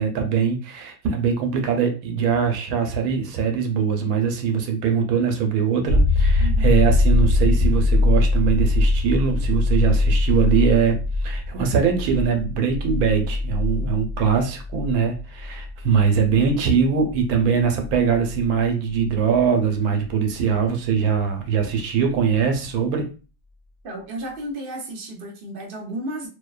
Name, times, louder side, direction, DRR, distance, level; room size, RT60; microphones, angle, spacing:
voice 1, 0.0-23.1, right 6 dB, 85° right, 4 dB, 1.1 m, -22 dB
sound 1, 5.9-19.4 22.1-22.2, left 2 dB, 65° left, 1.3 m, -22 dB
voice 2, 23.8-26.3, right 1 dB, 50° right, -1 dB, 0.7 m, -33 dB
2.6 x 2.1 x 2.3 m, 0.34 s
omnidirectional pair, 1.5 m